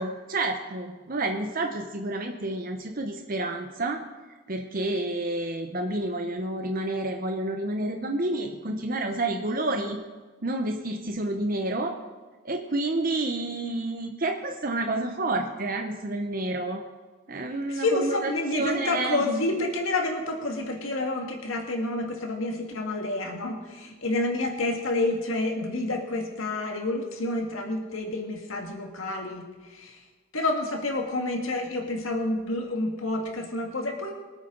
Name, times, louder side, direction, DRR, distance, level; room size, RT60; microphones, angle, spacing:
voice 1, 0.0-4.0 4.5-10.0 10.4-11.9 12.4-16.8 17.3-19.2, right 2 dB, 40° right, 4 dB, 0.8 m, -29 dB
voice 2, 17.7-30.0 30.3-34.1, left 2 dB, 70° left, 2 dB, 1.9 m, -29 dB
24.0 x 8.7 x 3.9 m, 1.3 s
head